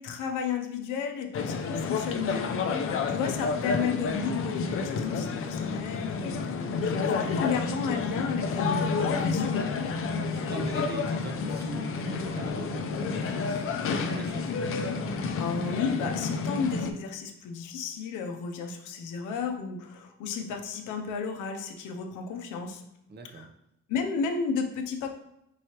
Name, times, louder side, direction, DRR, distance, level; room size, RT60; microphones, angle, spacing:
voice 1, 0.0-2.6 2.9-9.6 15.1-22.8 23.3-23.5 23.9-25.1, left 6 dB, 90° left, 5 dB, 0.6 m, -33 dB
sound 1, 1.3-16.9, left 4 dB, 45° left, 0.5 m, -30 dB
voice 2, 8.4-8.7 10.3-13.7 14.0-14.5 23.1-23.5, right 2 dB, 35° right, 5 dB, 0.6 m, -41 dB
4.6 x 3.1 x 2.9 m, 0.82 s
cardioid pair, 90°, 30 cm